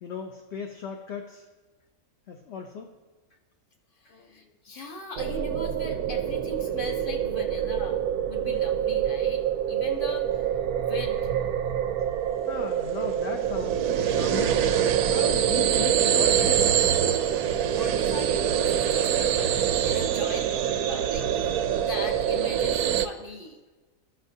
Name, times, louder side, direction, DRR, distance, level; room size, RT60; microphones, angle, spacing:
voice 1, 0.0-1.4 2.3-2.9 12.5-14.6 15.1-16.7, left 6 dB, 55° left, 2 dB, 0.8 m, -37 dB
voice 2, 4.0-8.0 8.3-10.5 10.8-11.3 17.4-23.6, left 3 dB, 40° left, 2 dB, 1.1 m, -40 dB
sound 1, 5.2-23.1, right 9 dB, 80° right, 1.0 m, -25 dB
16.0 x 6.4 x 2.7 m, 1.3 s
omnidirectional pair, 1.6 m